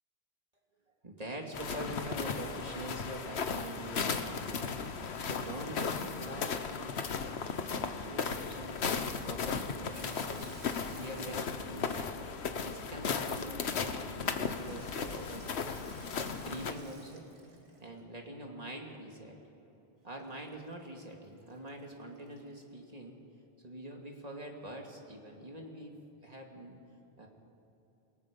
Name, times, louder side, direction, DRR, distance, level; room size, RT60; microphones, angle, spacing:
voice 1, 1.0-4.6 5.2-7.3 7.6-8.8 9.2-12.0 12.5-15.7 16.3-17.3 17.8-19.3 20.0-23.2 23.6-25.9 26.2-26.8 27.2-27.3, right 1 dB, 40° right, 0 dB, 2.7 m, -44 dB
sound 1, 1.5-16.7, left 5 dB, 90° left, 1.3 m, -36 dB
Water tap faucet / Sink (filling or washing), 9.9-12.9 14.4-18.2 20.2-22.7, right 2 dB, 90° right, 2.4 m, -57 dB
29.0 x 18.5 x 5.3 m, 3.0 s
omnidirectional pair, 1.1 m